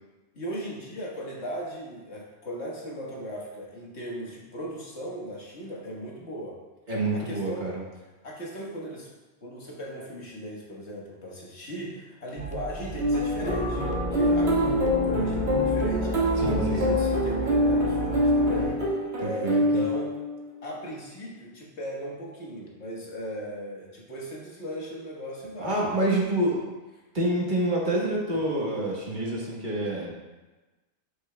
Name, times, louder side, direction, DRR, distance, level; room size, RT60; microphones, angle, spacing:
voice 1, 0.3-6.6 7.1-7.7 8.2-9.1 9.4-20.1 20.6-25.8 26.2-26.3, equal, 85° left, -4 dB, 1.7 m, -37 dB
voice 2, 6.9-7.8 16.4-17.0 19.2-19.6 25.6-26.6 27.1-30.1, right 1 dB, 50° right, -3 dB, 1.4 m, -27 dB
sound 1, 12.4-18.6, right 3 dB, 15° right, 0.3 m, -39 dB
sound 2, 13.0-20.5, left 1 dB, 75° right, 1.9 m, -25 dB
sound 3, 13.4-18.7, right 1 dB, 45° left, 1.6 m, -31 dB
8.2 x 6.6 x 2.2 m, 1.2 s
omnidirectional pair, 1.1 m